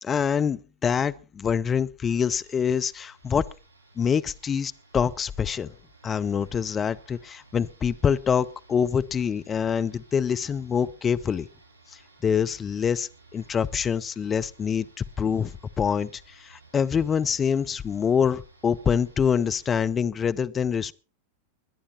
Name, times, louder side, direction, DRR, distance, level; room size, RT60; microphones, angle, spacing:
voice 1, 0.0-3.5 4.0-5.7 6.0-11.5 12.2-15.5 15.8-20.9, left 7 dB, 20° left, 0.7 m, -25 dB
sound 1, 2.1-19.8, right 2 dB, 75° right, 7.3 m, -56 dB
21.5 x 10.0 x 4.3 m
figure-of-eight pair, 90°, 0 cm